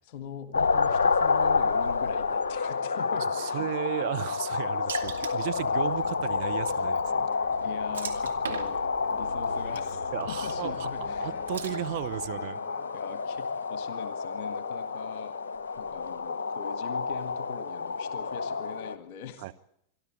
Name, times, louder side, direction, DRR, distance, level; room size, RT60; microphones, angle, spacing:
voice 1, 0.1-3.7 7.5-11.3 12.9-15.3 15.8-19.5, left 8 dB, 45° left, 10 dB, 1.8 m, -43 dB
sound 1, 0.5-19.0, left 4 dB, 65° left, 1.0 m, -29 dB
voice 2, 3.3-7.3 10.1-10.9 11.2-12.6 19.4-19.5, right 16 dB, 50° right, 8 dB, 0.9 m, -34 dB
Water / Splash splatter, 4.9-12.3, right 7 dB, 70° right, 2.0 m, -43 dB
sound 2, 5.2-14.2 15.5-16.3, left 5 dB, 25° left, 3.5 m, -53 dB
26.0 x 12.0 x 9.1 m, 0.76 s
figure-of-eight pair, 90°, 0 cm